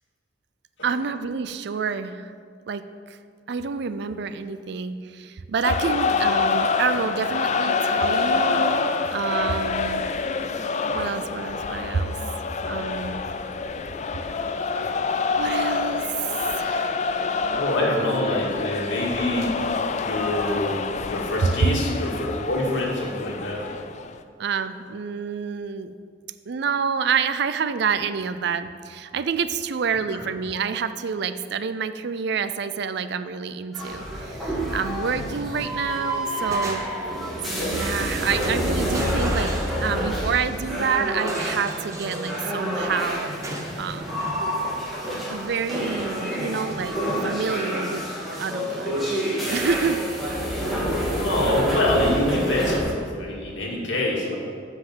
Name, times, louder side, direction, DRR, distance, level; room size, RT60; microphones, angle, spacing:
voice 1, 0.8-2.3 2.7-2.8 3.5-8.8 9.1-10.0 10.9-12.2 12.6-13.2 15.4-16.9 21.4-21.7 24.4-25.9 26.5-36.8 37.5-39.5 39.8-43.3 43.8-44.3 45.3-48.1 48.4-49.0 49.5-50.0, right 6 dB, 65° right, 12 dB, 0.4 m, -28 dB
sound 1, 5.6-24.2, left 4 dB, 40° left, 0.4 m, -26 dB
voice 2, 17.5-19.5 20.0-23.8 30.6-30.7 51.0-54.4, left 1 dB, 80° left, -3 dB, 2.1 m, -25 dB
sound 2, 33.7-52.8, equal, ahead, 2.2 m, -28 dB
sound 3, 35.2-35.7 36.0-37.2 37.9-38.1 38.4-40.3 41.2-42.5 43.4-44.4, right 1 dB, 15° right, 1.1 m, -36 dB
7.7 x 6.0 x 7.3 m, 2.2 s
head